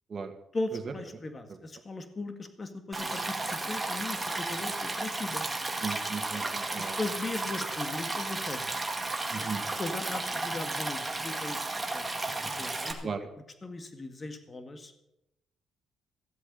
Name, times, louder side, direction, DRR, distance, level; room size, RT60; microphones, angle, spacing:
voice 1, 0.5-5.5 6.8-8.8 9.4-9.5 9.8-12.2 12.6-13.1 13.6-14.9, left 2 dB, 30° left, 8 dB, 1.8 m, -38 dB
Stream, 2.9-12.9, right 2 dB, 15° right, 2.1 m, -33 dB
voice 2, 5.8-7.0 9.3-9.6 13.0-13.2, right 5 dB, 40° right, 5 dB, 2.0 m, -36 dB
15.0 x 8.0 x 6.9 m, 0.86 s
cardioid pair, 90°, 0 cm